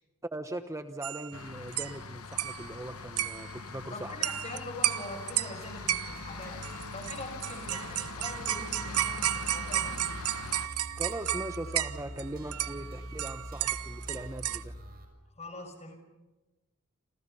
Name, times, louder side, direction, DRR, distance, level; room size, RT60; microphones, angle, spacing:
voice 1, 0.3-4.1 11.0-14.7, right 1 dB, 15° right, 8 dB, 1.0 m, -40 dB
sound 1, 1.0-1.4 1.7-2.0 2.3-2.8 3.2-3.6 4.2-4.6 4.8-5.5 5.9-6.3 6.6-12.2 12.5-14.6, right 13 dB, 80° right, 1.0 m, -33 dB
sound 2, 1.3-10.7, left 5 dB, 75° left, 1.1 m, -43 dB
voice 2, 3.9-6.6 6.9-10.1 15.3-16.0, left 2 dB, 30° left, 6 dB, 6.2 m, -43 dB
sound 3, 5.6-15.0, right 1 dB, 45° right, 6.8 m, -44 dB
29.0 x 27.5 x 5.6 m, 1.1 s
head